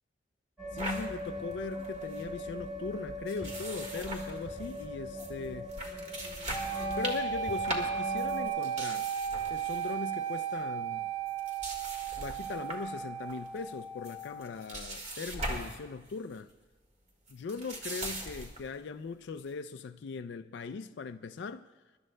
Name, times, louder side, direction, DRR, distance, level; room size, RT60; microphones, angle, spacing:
sound 1, 0.6-8.5, left 1 dB, 5° right, 1.3 m, -40 dB
voice 1, 0.7-5.7 7.0-9.1 9.5-11.1 12.2-16.5 17.3-21.7, left 5 dB, 65° left, 0.4 m, -40 dB
sound 2, 0.8-1.1 1.5-1.6 1.8-2.2 3.3-4.8 5.2-5.3 5.7-9.9 10.2-10.5 11.3-12.9 13.3-13.7 14.0-15.8 16.1-16.4 17.3-18.7, right 1 dB, 40° right, 1.7 m, -40 dB
sound 3, 6.5-14.6, right 7 dB, 20° left, 1.0 m, -35 dB
24.5 x 12.0 x 2.2 m
head